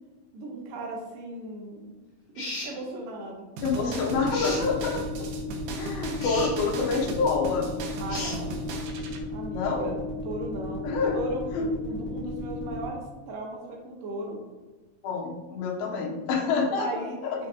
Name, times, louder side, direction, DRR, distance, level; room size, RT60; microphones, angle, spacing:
voice 1, 0.3-1.9 2.4-3.5 3.7-4.1 8.0-8.6 9.3-10.9 11.1-14.4 16.8-17.5, right 2 dB, 75° right, -1 dB, 2.5 m, -37 dB
sound 1, 2.3-2.7 4.3-4.6 6.2-6.5 8.1-8.4, left 2 dB, 45° left, 3.3 m, -34 dB
voice 2, 3.6-5.3 5.8-7.7 9.5-9.9 10.8-11.2 11.5-11.7 15.0-16.9 17.2-17.4, left 4 dB, 80° left, 1 dB, 2.7 m, -27 dB
sound 2, 3.6-9.2, right 2 dB, 90° right, 2.8 m, -37 dB
sound 3, 4.1-12.8, left 3 dB, 15° right, 1.0 m, -35 dB
7.1 x 6.3 x 2.8 m, 1.3 s
omnidirectional pair, 4.2 m